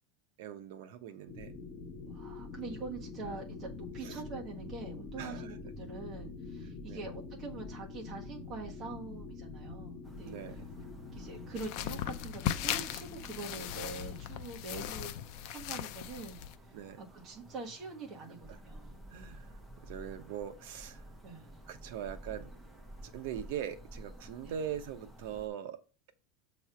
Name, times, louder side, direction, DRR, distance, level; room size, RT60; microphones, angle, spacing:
voice 1, 0.4-1.6 4.0-4.2 5.2-5.6 6.9-7.0 10.2-10.7 16.7-17.0 18.5-18.6 19.1-21.1 21.7-22.5 23.0-25.8, right 9 dB, 60° right, 8 dB, 0.9 m, -41 dB
sound 1, 1.3-14.6, left 3 dB, 15° left, 1.9 m, -45 dB
voice 2, 2.0-10.3 11.1-15.2 15.5-16.4 17.0-19.0 21.2-21.5 24.4-24.5, right 3 dB, 25° right, -1 dB, 1.4 m, -44 dB
sound 2, 10.0-25.5, right 1 dB, 10° right, 0.9 m, -53 dB
sound 3, 11.6-16.6, left 12 dB, 50° left, 0.5 m, -38 dB
7.4 x 3.2 x 5.8 m, 0.32 s
supercardioid pair, 170°, 0 cm